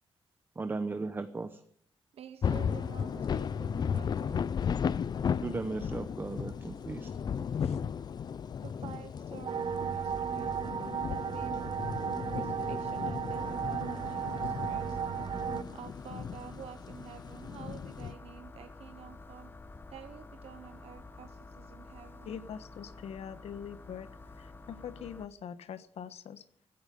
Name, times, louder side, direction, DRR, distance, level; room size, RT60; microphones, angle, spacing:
voice 1, 0.6-1.6 5.4-7.4, right 3 dB, 20° right, 0.8 m, -37 dB
voice 2, 2.2-4.5 8.6-10.6 11.1-11.7 12.2-15.0 15.7-19.5 19.9-22.4, right 9 dB, 75° right, 1.0 m, -49 dB
sound 1, 2.4-18.1, left 7 dB, 40° left, 0.5 m, -35 dB
voice 3, 7.5-7.8 22.2-26.4, left 8 dB, 85° left, 1.2 m, -43 dB
sound 2, 9.4-15.6, right 7 dB, 50° right, 1.3 m, -34 dB
sound 3, 13.3-25.3, left 3 dB, 20° left, 1.0 m, -50 dB
16.5 x 14.0 x 5.3 m
wide cardioid pair, 175°, 10 cm